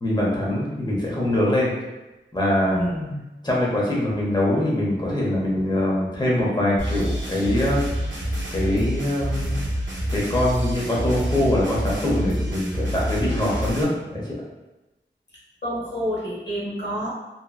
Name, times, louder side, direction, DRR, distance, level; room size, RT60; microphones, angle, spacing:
voice 1, 0.0-1.7 2.3-2.8 3.4-7.9 8.5-9.6 10.1-14.4, left 1 dB, 20° left, -5 dB, 0.8 m, -23 dB
voice 2, 2.7-3.2 15.6-17.2, equal, 65° left, -6 dB, 0.9 m, -28 dB
sound 1, 6.8-13.8, equal, 75° right, 0.5 m, -27 dB
2.7 x 2.3 x 2.3 m, 1.0 s
wide cardioid pair, 55°, 20 cm